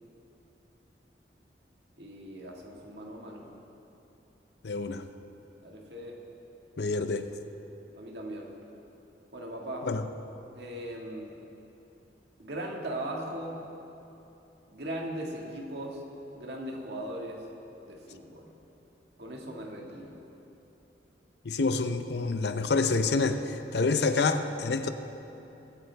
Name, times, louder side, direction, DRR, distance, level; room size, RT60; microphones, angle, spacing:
voice 1, 2.0-3.5 5.6-6.2 8.0-8.5 9.3-9.9 10.6-11.4 12.4-13.6 14.7-16.0 16.4-17.5 17.9-18.5 19.2-20.2, right 1 dB, 70° right, 0 dB, 1.7 m, -39 dB
voice 2, 4.6-5.0 6.8-7.3 9.8-10.0 21.4-24.9, left 3 dB, 70° left, 9 dB, 0.6 m, -27 dB
21.5 x 8.8 x 3.4 m, 3.0 s
head